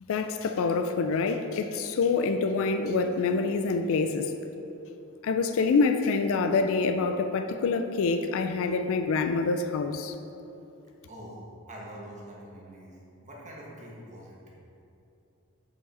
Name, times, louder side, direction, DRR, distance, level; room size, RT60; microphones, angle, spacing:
voice 1, 0.1-4.3 5.2-10.1, left 4 dB, 65° left, 7 dB, 0.4 m, -26 dB
voice 2, 11.1-11.4 11.7-13.0 13.2-14.4, equal, 35° right, -4 dB, 1.2 m, -44 dB
5.8 x 4.8 x 4.2 m, 2.8 s
head